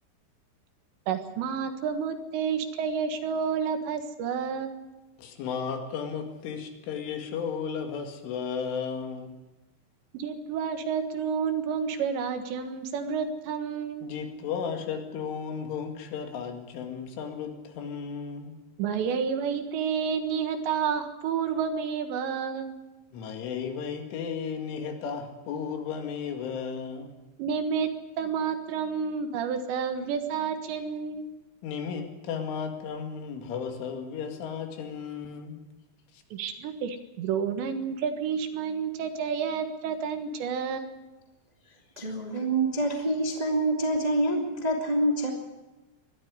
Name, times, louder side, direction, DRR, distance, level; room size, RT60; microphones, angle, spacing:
voice 1, 1.1-4.7 10.1-14.1 18.8-22.8 27.4-27.9 28.2-31.3 36.3-40.8, right 6 dB, 70° right, 7 dB, 3.5 m, -30 dB
voice 2, 5.2-9.3 14.0-18.6 23.1-27.2 31.6-35.6 36.1-36.2, left 6 dB, 85° left, 4 dB, 4.5 m, -34 dB
voice 3, 41.9-45.3, right 1 dB, 35° right, 1 dB, 0.6 m, -26 dB
21.5 x 13.0 x 9.6 m, 1.1 s
omnidirectional pair, 5.4 m